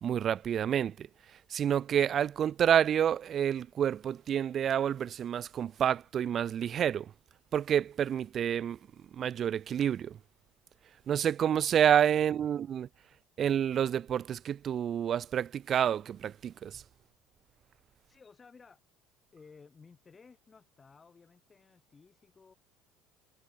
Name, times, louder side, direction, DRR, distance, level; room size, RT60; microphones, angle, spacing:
voice 1, 0.0-1.1 1.5-7.1 7.5-8.8 9.1-10.2 11.1-12.9 13.4-16.8, right 9 dB, 30° right, 1.3 m, -28 dB
voice 2, 18.0-18.8 19.3-22.5, left 5 dB, 15° left, 6.9 m, -57 dB
cardioid pair, 175°, 0 cm